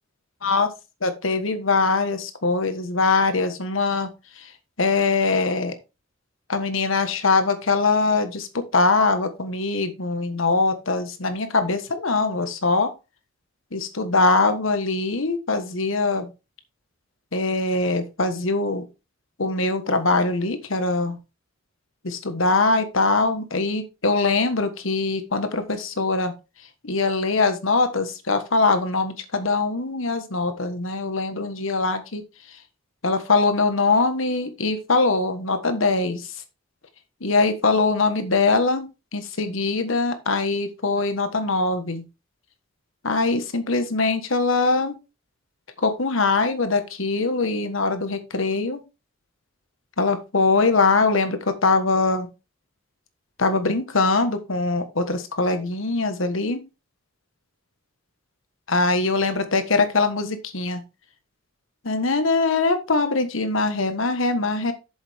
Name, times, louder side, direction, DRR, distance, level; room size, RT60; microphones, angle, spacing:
voice 1, 1.0-4.1 4.4-4.5 4.8-5.7 6.5-12.9 13.7-16.3 17.3-18.8 19.4-21.2 22.0-26.3 26.8-32.2 33.0-36.3 37.2-42.0 43.0-45.0 45.8-48.8 50.0-52.3 53.4-56.6 58.7-60.8 61.8-64.7, left 3 dB, 75° left, 9 dB, 1.4 m, -22 dB
8.3 x 7.1 x 3.5 m, 0.28 s
head